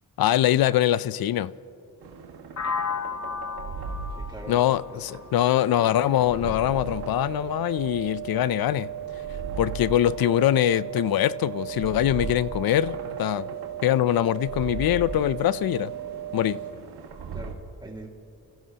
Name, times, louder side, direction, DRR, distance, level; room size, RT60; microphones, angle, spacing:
voice 1, 0.2-1.5 4.5-8.9 9.6-13.5 13.8-15.9 16.3-16.6, left 12 dB, 70° left, 0.5 m, -23 dB
sound 1, 2.0-17.5, right 4 dB, 90° right, 1.7 m, -39 dB
sound 2, 2.6-6.4, left 5 dB, 45° left, 0.9 m, -34 dB
voice 2, 4.1-4.6 4.9-5.1 8.3-8.4 17.3-18.1, right 2 dB, 10° right, 2.2 m, -42 dB
sound 3, 6.7-16.7, right 12 dB, 35° right, 1.5 m, -36 dB
29.0 x 16.0 x 2.9 m
cardioid pair, 55°, 38 cm